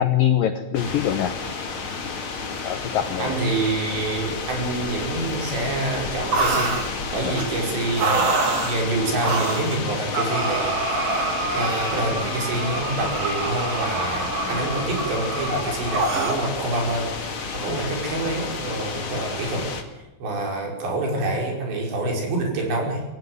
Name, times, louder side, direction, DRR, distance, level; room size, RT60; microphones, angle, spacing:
voice 1, 0.0-1.3 2.6-3.3 7.2-7.4 14.5-14.6 17.7-17.8, left 10 dB, 75° left, 9 dB, 2.1 m, -23 dB
sound 1, 0.7-19.8, left 4 dB, 40° left, 2.1 m, -31 dB
voice 2, 3.2-6.8 7.1-8.3 8.6-17.1 17.5-23.0, right 2 dB, 65° right, 1 dB, 7.4 m, -27 dB
sound 2, 6.3-6.9 7.3-7.5 7.9-8.8 9.2-9.8 10.1-16.4, right 3 dB, 35° right, 3.4 m, -26 dB
23.0 x 16.5 x 9.5 m, 0.97 s
omnidirectional pair, 5.4 m